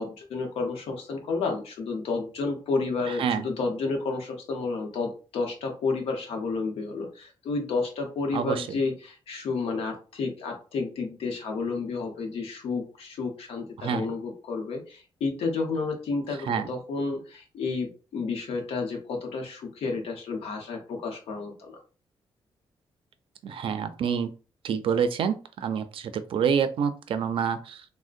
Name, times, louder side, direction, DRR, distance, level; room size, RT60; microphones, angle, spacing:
voice 1, 0.0-21.8, left 4 dB, 85° left, 2 dB, 0.8 m, -31 dB
voice 2, 3.1-3.5 8.3-8.7 13.8-14.1 16.5-16.7 23.4-24.3 24.6-27.8, right 7 dB, 65° right, 11 dB, 0.4 m, -27 dB
3.6 x 2.1 x 2.5 m, 0.35 s
cardioid pair, 100°, 10 cm